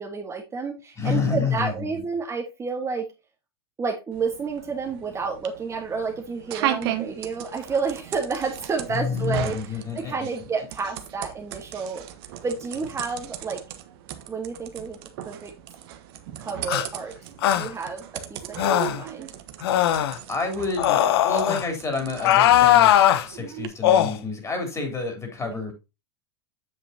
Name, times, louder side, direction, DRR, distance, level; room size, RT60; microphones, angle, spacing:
voice 1, 0.0-3.0 3.8-12.0 12.4-13.6 14.3-15.0 15.2-15.5 16.4-17.1 17.5-18.0 18.3-19.3 25.4-25.6, right 5 dB, 20° right, 2 dB, 1.5 m, -30 dB
voice 2, 1.0-1.9 8.9-10.3 20.3-25.7, left 4 dB, 20° left, 4 dB, 3.5 m, -29 dB
sound 1, 4.1-23.7, right 11 dB, 60° right, 1.3 m, -37 dB
sound 2, 16.7-16.9 17.4-17.7 18.6-19.0 19.6-20.2 20.8-21.6 22.2-23.2 23.8-24.1, left 11 dB, 70° left, 0.8 m, -19 dB
8.2 x 7.1 x 2.8 m, 0.26 s
hypercardioid pair, 100°, 14 cm